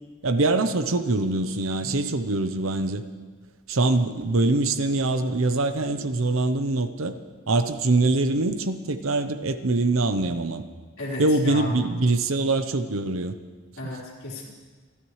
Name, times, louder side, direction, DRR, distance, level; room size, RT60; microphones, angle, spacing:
voice 1, 0.2-3.0 3.7-7.1 7.5-10.6 11.2-13.3, right 2 dB, 75° right, 10 dB, 0.8 m, -23 dB
voice 2, 11.0-11.7 13.8-14.5, left 2 dB, 75° left, -6 dB, 4.3 m, -34 dB
27.0 x 12.5 x 3.2 m, 1.5 s
head